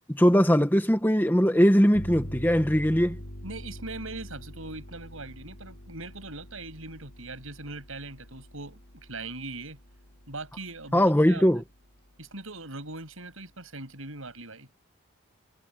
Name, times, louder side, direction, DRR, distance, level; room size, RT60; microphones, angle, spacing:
voice 1, 0.1-3.2 10.9-11.6, equal, 10° left, 1.7 m, -21 dB
sound 1, 1.9-11.2, equal, 70° left, 3.2 m, -44 dB
voice 2, 3.4-9.8 10.3-11.5 12.2-14.7, right 2 dB, 85° right, 7.9 m, -40 dB
head